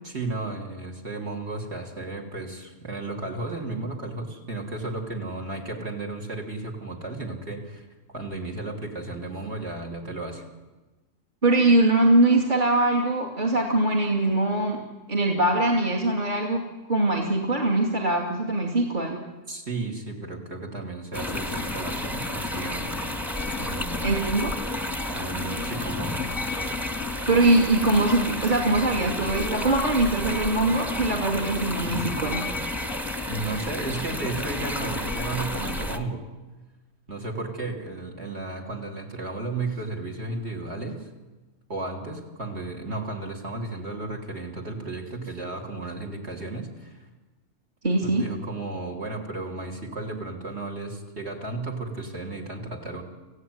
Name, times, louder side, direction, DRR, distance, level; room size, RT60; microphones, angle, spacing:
voice 1, 0.0-10.4 19.5-22.9 23.6-24.1 25.1-26.2 33.3-36.3 37.1-41.1 41.7-47.0 48.0-53.0, right 2 dB, 50° right, 3 dB, 3.5 m, -34 dB
voice 2, 11.4-14.8 15.1-16.6 16.9-19.2 24.0-24.5 27.3-32.4 47.8-48.2, right 2 dB, 35° right, 0 dB, 2.6 m, -22 dB
sound 1, 21.1-36.0, left 2 dB, ahead, 1.4 m, -31 dB
26.5 x 15.5 x 9.5 m, 1.2 s
omnidirectional pair, 1.4 m